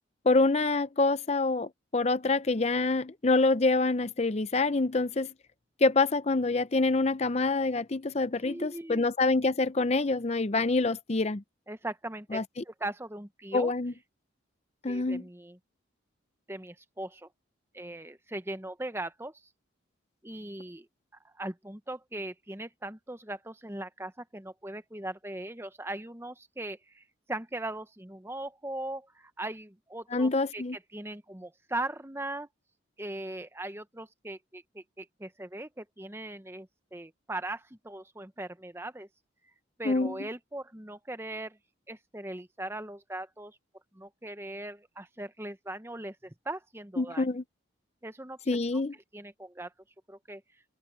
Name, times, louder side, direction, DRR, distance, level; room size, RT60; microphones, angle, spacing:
voice 1, 0.2-5.3 5.8-11.4 12.3-12.4 13.5-13.9 14.8-15.2 30.1-30.8 39.8-40.1 47.0-47.4 48.5-48.9, left 3 dB, 30° left, 0.6 m, -26 dB
voice 2, 8.4-9.1 11.7-12.4 12.6-13.7 14.9-15.6 16.5-17.3 17.7-19.4 20.2-20.9 21.2-32.5 33.0-39.1 39.8-41.6 41.9-43.6 43.9-47.3 48.0-48.6 49.1-49.7 50.1-50.4, right 1 dB, 10° right, 0.9 m, -39 dB
head